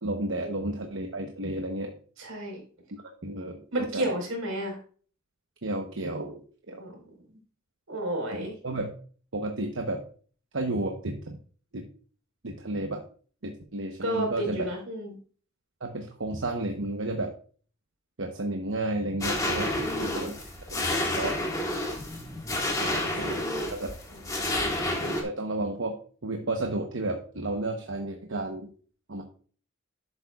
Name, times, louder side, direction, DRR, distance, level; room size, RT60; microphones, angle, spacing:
voice 1, 0.0-1.9 3.2-4.1 5.6-6.8 8.3-8.9 9.3-10.0 10.5-11.2 11.7-11.8 12.4-13.0 13.4-14.7 15.8-17.3 18.2-19.7 20.0-20.4 20.7-21.4 22.8-23.4 23.7-23.9 25.0-25.9 26.2-28.7 29.1-29.2, right 2 dB, 65° right, 3 dB, 1.0 m, -32 dB
voice 2, 2.2-2.6 3.7-4.8 6.8-6.9 7.9-8.5 14.0-15.1 19.8-20.3 22.9-23.7 24.1-24.2 24.5-24.7, right 1 dB, 85° right, 0 dB, 4.6 m, -32 dB
sound 1, 19.2-25.2, left 1 dB, 15° left, 1.8 m, -30 dB
11.5 x 8.0 x 2.4 m, 0.42 s
head